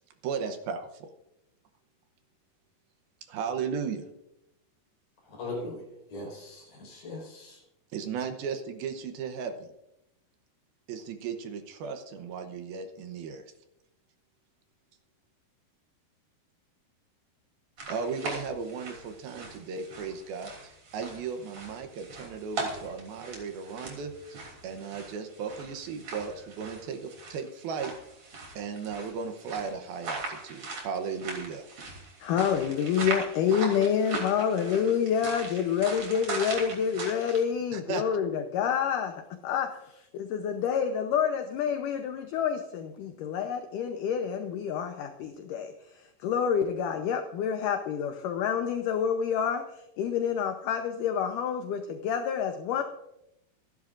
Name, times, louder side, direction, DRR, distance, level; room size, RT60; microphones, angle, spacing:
voice 1, 0.2-1.1 3.2-4.1 7.9-9.7 10.9-13.5 17.9-27.9 28.6-31.7 37.7-38.1, right 6 dB, 75° right, 7 dB, 2.6 m, -36 dB
voice 2, 5.3-5.8 6.1-7.6, left 2 dB, 55° left, -1 dB, 6.1 m, -39 dB
sound 1, 17.8-37.4, right 3 dB, 45° right, 4.0 m, -40 dB
voice 3, 32.2-49.6 50.0-52.8, left 7 dB, 75° left, 6 dB, 2.0 m, -28 dB
26.0 x 11.5 x 2.5 m, 0.85 s
omnidirectional pair, 4.7 m